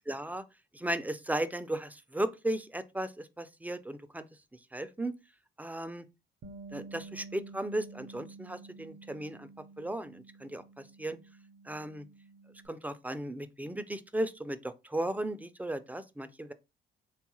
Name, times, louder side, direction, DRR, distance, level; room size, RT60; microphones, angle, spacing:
voice 1, 0.1-0.4 0.7-4.3 4.7-5.1 5.6-6.0 6.7-9.5 9.8-10.6 11.0-11.2 11.7-12.0 12.7-16.5, right 1 dB, 10° right, 0.3 m, -35 dB
Bass guitar, 6.4-12.7, right 3 dB, 60° right, 0.5 m, -50 dB
3.3 x 2.3 x 2.9 m
cardioid pair, 90°, 20 cm